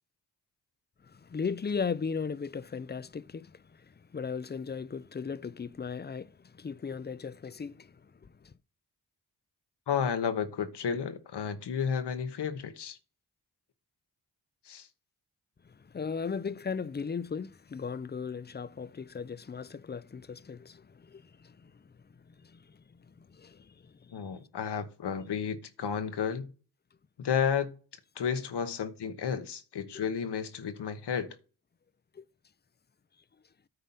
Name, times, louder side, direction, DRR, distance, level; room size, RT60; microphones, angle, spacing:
voice 1, 1.0-8.5 15.6-24.4 32.1-32.2, left 5 dB, 25° left, 0.5 m, -38 dB
voice 2, 9.9-13.0 14.6-14.9 24.1-26.5 27.2-27.7 28.1-31.4, left 7 dB, 75° left, 1.1 m, -32 dB
9.5 x 4.0 x 5.7 m
cardioid pair, 50°, 40 cm